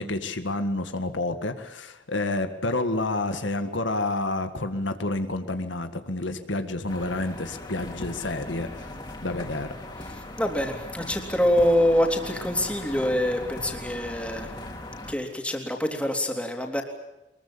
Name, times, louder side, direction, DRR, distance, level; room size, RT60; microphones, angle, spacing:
voice 1, 0.0-8.9 9.2-9.9, left 2 dB, 85° left, 8 dB, 1.9 m, -29 dB
sound 1, 6.9-15.1, left 1 dB, 25° left, 3.6 m, -39 dB
voice 2, 10.4-14.5 15.1-16.8, left 1 dB, 5° left, 2 dB, 3.4 m, -25 dB
23.5 x 22.0 x 8.7 m, 0.95 s
head